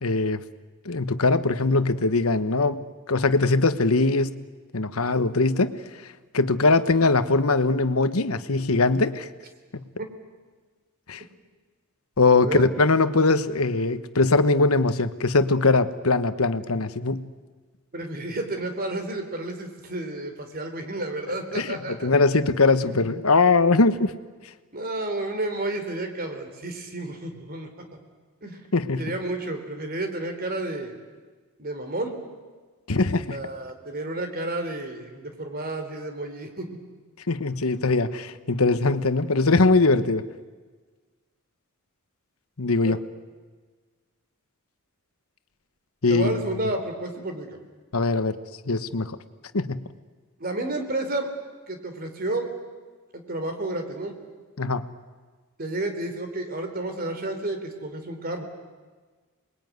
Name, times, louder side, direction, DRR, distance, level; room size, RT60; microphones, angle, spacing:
voice 1, 0.0-0.4 0.8-4.4 4.7-5.8 6.3-9.3 9.7-9.8 11.1-11.2 12.2-17.3 21.5-24.1 28.7-29.1 32.9-33.4 37.3-40.3 42.6-43.0 46.0-46.3 47.9-48.4 48.7-49.2 49.5-49.9 54.6-54.9, left 3 dB, 75° left, 12 dB, 1.2 m, -21 dB
voice 2, 17.9-22.1 22.8-23.2 24.7-27.7 28.4-28.6 29.0-31.0 31.6-32.2 33.3-36.7 42.8-43.0 46.1-47.6 50.4-51.3 51.7-52.5 53.1-54.2 55.6-58.4, right 2 dB, 45° right, 6 dB, 3.7 m, -31 dB
28.0 x 21.5 x 9.5 m, 1.4 s
head